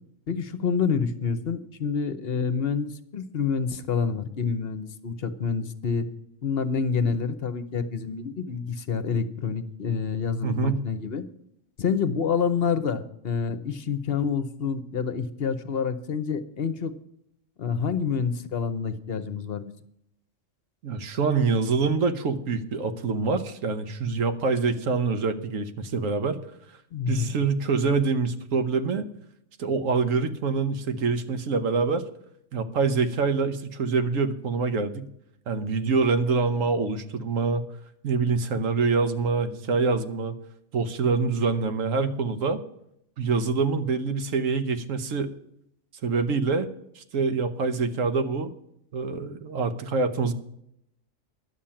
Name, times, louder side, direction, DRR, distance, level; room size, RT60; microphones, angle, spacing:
voice 1, 0.3-6.1 6.4-11.2 11.8-16.9 17.6-19.7 26.9-27.3, left 6 dB, 55° left, 12 dB, 0.9 m, -28 dB
voice 2, 10.4-10.8 20.8-26.4 27.1-29.1 29.6-32.0 32.5-35.1 35.5-37.6 38.0-40.4 40.7-42.6 43.2-45.3 46.0-46.7 46.9-48.5 48.9-50.3, right 4 dB, 80° right, 9 dB, 1.3 m, -25 dB
11.0 x 7.4 x 8.7 m, 0.75 s
omnidirectional pair, 1.3 m